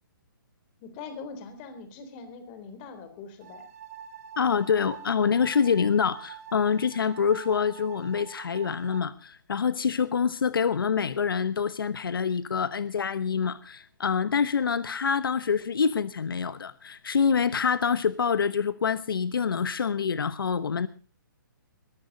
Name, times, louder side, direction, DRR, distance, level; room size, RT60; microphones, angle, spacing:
voice 1, 0.8-3.7, left 4 dB, 25° left, 9 dB, 3.4 m, -42 dB
sound 1, 3.4-9.0, right 7 dB, 45° right, 1.6 m, -45 dB
voice 2, 4.4-20.9, left 6 dB, 85° left, 16 dB, 1.0 m, -26 dB
21.5 x 13.0 x 3.9 m, 0.34 s
hypercardioid pair, 160°, 11 cm